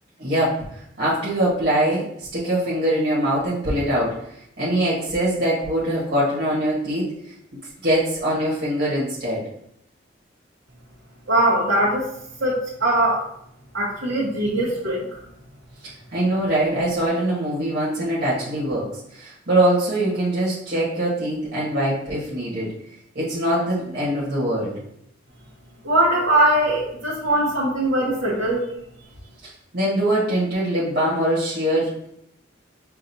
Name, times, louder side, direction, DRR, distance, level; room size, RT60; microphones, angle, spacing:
voice 1, 0.2-4.2 4.6-7.1 7.8-9.5 15.8-22.7 23.1-24.8 29.4-32.1, right 1 dB, 55° right, -7 dB, 1.2 m, -23 dB
voice 2, 11.3-12.0 12.4-13.2 13.7-15.0 25.8-28.7, right 1 dB, 90° right, -7 dB, 1.1 m, -21 dB
5.8 x 2.5 x 2.7 m, 0.72 s
head